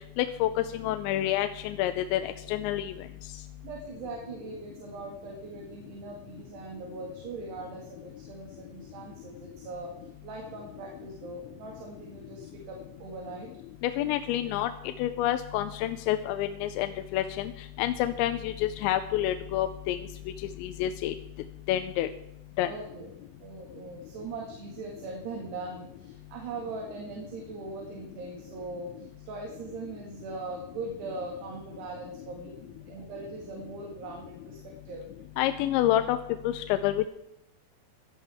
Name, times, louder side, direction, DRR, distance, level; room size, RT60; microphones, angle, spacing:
voice 1, 0.2-2.9 13.8-14.7 15.0-17.5 17.8-20.1 20.6-21.1 21.7-22.1 22.6-22.7 35.4-36.2 36.4-37.1, left 13 dB, 85° left, 8 dB, 3.0 m, -28 dB
voice 2, 3.6-9.9 10.2-13.5 22.6-23.1 23.4-35.1, right 3 dB, 70° right, -1 dB, 4.0 m, -40 dB
17.5 x 12.5 x 3.5 m, 0.83 s
omnidirectional pair, 5.1 m